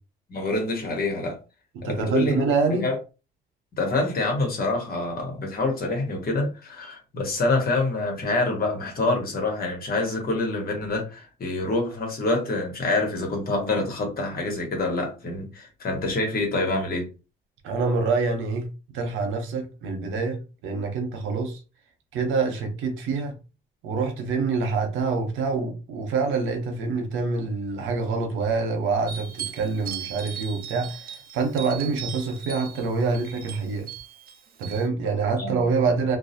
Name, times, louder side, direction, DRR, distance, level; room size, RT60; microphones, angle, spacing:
voice 1, 0.3-1.4 1.8-2.4 2.8-3.0 3.7-17.1 35.4-35.6 35.9-36.0, left 2 dB, 50° left, 1.1 m, -26 dB
voice 2, 1.7-2.9 17.6-18.7 18.9-21.6 22.1-23.4 23.8-33.9 34.6-36.2, right 4 dB, 85° right, 0.7 m, -26 dB
sound 1, 29.1-34.9, right 8 dB, 45° right, 0.5 m, -38 dB
2.3 x 2.0 x 2.7 m
cardioid pair, 90°, 20 cm